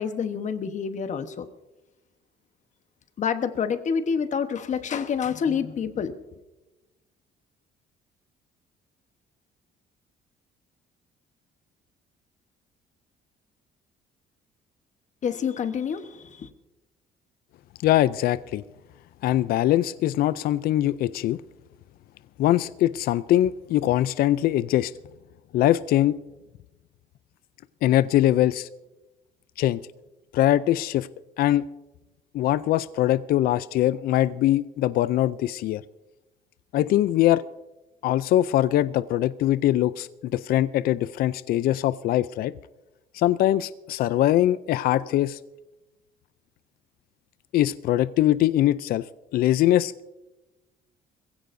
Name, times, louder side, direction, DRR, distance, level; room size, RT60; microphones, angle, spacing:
voice 1, 0.0-1.5 3.2-6.2 15.2-16.5, left 6 dB, 45° left, 10 dB, 1.1 m, -27 dB
voice 2, 17.8-18.6 19.2-21.4 22.4-24.9 25.5-26.2 27.8-28.7 29.6-29.8 30.3-31.1 31.4-31.7 32.3-35.8 36.7-37.4 38.0-42.5 43.1-45.4 47.5-49.0 49.3-50.1, left 13 dB, 60° left, 17 dB, 0.4 m, -22 dB
21.5 x 16.0 x 2.6 m, 1.0 s
cardioid pair, 115°, 17 cm